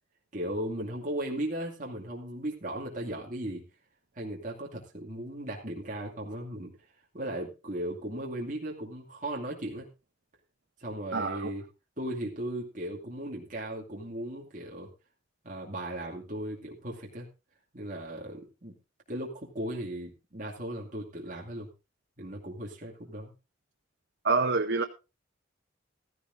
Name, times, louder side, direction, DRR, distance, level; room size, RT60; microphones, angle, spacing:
voice 1, 0.3-3.6 4.2-6.8 7.1-9.9 10.8-11.7 12.0-14.9 15.4-17.3 17.7-18.7 19.1-21.7 22.2-23.3, right 1 dB, 40° right, -2 dB, 2.4 m, -37 dB
voice 2, 11.1-11.5 24.2-24.8, right 4 dB, 60° right, 6 dB, 0.8 m, -26 dB
15.0 x 14.5 x 2.6 m, 0.29 s
head